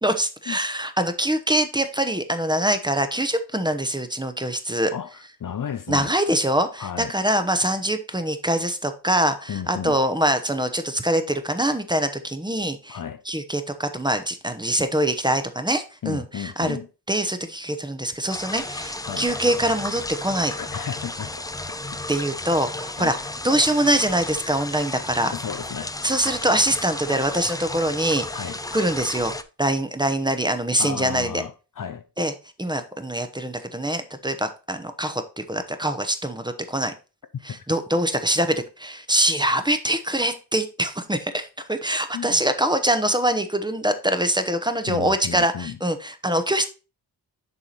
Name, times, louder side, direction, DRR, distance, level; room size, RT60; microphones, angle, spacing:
voice 1, 0.0-4.9 5.9-13.0 13.3-16.8 17.1-20.5 22.1-23.2 23.4-25.3 26.0-29.3 29.6-31.4 32.2-32.3 32.6-36.9 37.4-46.6, right 1 dB, 10° right, 0.9 m, -24 dB
voice 2, 5.4-6.1 6.8-7.1 9.5-10.0 12.9-13.2 16.0-16.9 19.0-19.3 20.6-21.3 23.0-23.1 25.3-26.4 28.3-28.6 30.8-32.0 37.5-37.6 42.1-42.4 44.9-45.8, left 8 dB, 50° left, 0.7 m, -33 dB
sound 1, 18.3-29.4, left 2 dB, 10° left, 0.5 m, -33 dB
7.1 x 4.8 x 4.1 m
cardioid pair, 80°, 41 cm